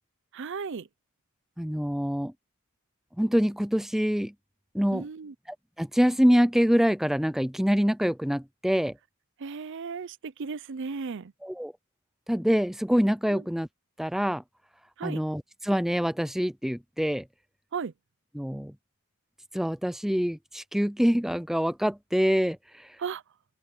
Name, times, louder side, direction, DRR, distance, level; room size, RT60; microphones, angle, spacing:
voice 1, 0.3-0.9 4.9-5.3 9.4-11.3 13.3-13.4 15.0-15.2 17.7-17.9 23.0-23.2, right 5 dB, 60° right, 0.5 m, -35 dB
voice 2, 1.6-2.3 3.2-4.3 4.7-5.0 5.8-8.9 11.4-11.7 12.3-13.7 14.0-14.4 15.0-17.3 18.4-18.7 19.5-22.6, equal, ahead, 0.5 m, -25 dB
open air
head